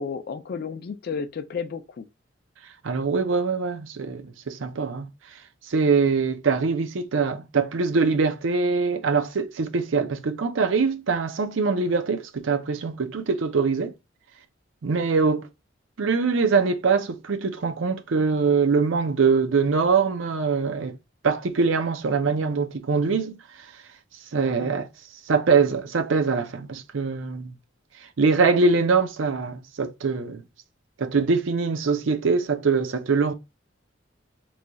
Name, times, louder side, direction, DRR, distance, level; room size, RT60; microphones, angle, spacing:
voice 1, 0.0-2.1 24.6-24.7, left 5 dB, 55° left, 0.4 m, -32 dB
voice 2, 2.8-5.1 5.7-13.9 14.8-15.5 16.0-21.0 21.2-23.4 24.3-24.9 25.3-27.5 28.2-30.4 31.0-33.3, right 4 dB, 80° right, 0.5 m, -23 dB
3.2 x 2.3 x 3.9 m
head